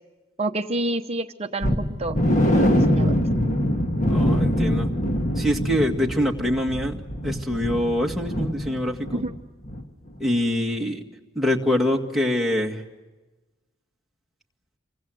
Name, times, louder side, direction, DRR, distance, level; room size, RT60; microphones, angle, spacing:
voice 1, 0.4-2.2 2.5-3.1 9.1-9.3, right 2 dB, 30° right, 6 dB, 0.9 m, -28 dB
sound 1, 1.6-9.4 9.6-9.8 10.2-10.3, equal, 35° left, 1.7 m, -23 dB
voice 2, 4.0-4.9 5.4-9.2 10.2-11.0 11.4-12.8, left 1 dB, ahead, -1 dB, 2.0 m, -24 dB
27.5 x 24.0 x 7.8 m, 1.2 s
head